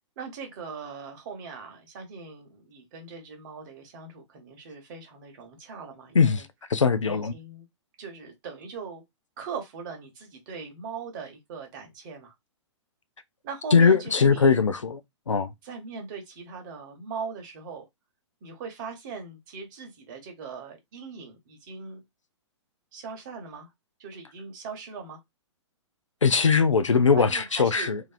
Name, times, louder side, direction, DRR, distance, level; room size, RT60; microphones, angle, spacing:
voice 1, 0.2-6.5 7.0-7.7 8.0-9.0 9.4-12.3 13.4-14.6 15.6-17.8 18.4-22.0 22.9-23.7 24.0-25.2 27.1-27.9, right 5 dB, 40° right, 1.1 m, -40 dB
voice 2, 6.7-7.3 13.7-15.0 15.3-15.5 26.2-28.0, left 5 dB, 85° left, 0.5 m, -20 dB
2.8 x 2.6 x 2.4 m
figure-of-eight pair, 115°, 16 cm